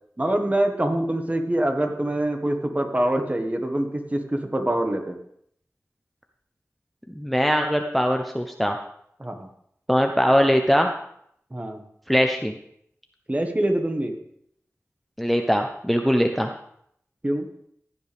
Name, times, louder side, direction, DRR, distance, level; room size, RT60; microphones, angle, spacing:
voice 1, 0.2-5.2 9.2-9.5 11.5-11.8 13.3-14.2 17.2-17.5, right 1 dB, 25° right, 4 dB, 1.5 m, -25 dB
voice 2, 7.2-8.8 9.9-10.9 12.1-12.5 15.2-16.5, equal, ahead, 4 dB, 0.9 m, -21 dB
15.5 x 9.5 x 3.5 m, 0.70 s
wide cardioid pair, 70°, 5 cm